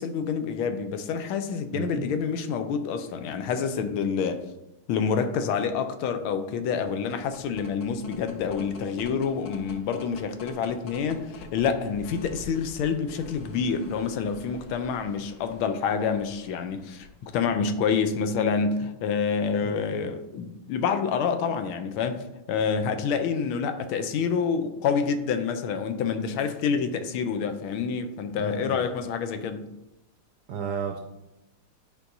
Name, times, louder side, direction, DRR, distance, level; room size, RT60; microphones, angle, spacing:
voice 1, 0.0-4.4 4.9-29.7, left 6 dB, 85° left, 8 dB, 1.5 m, -27 dB
voice 2, 1.7-2.1 19.6-20.1 28.4-28.8 30.5-31.0, right 6 dB, 75° right, 3 dB, 0.9 m, -33 dB
sound 1, 6.9-17.5, left 1 dB, 60° left, 0.8 m, -47 dB
10.5 x 4.7 x 2.6 m, 0.91 s
omnidirectional pair, 2.3 m